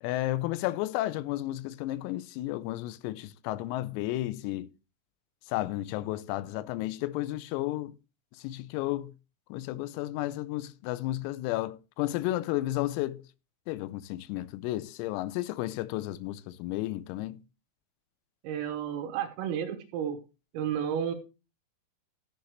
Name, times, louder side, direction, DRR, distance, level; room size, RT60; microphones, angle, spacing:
voice 1, 0.0-4.7 5.5-8.0 8.4-9.1 9.5-13.2 13.7-17.4, left 16 dB, 90° left, 3.4 m, -32 dB
voice 2, 18.4-20.2 20.5-21.2, right 9 dB, 85° right, 3.7 m, -32 dB
14.0 x 7.9 x 3.2 m
omnidirectional pair, 6.0 m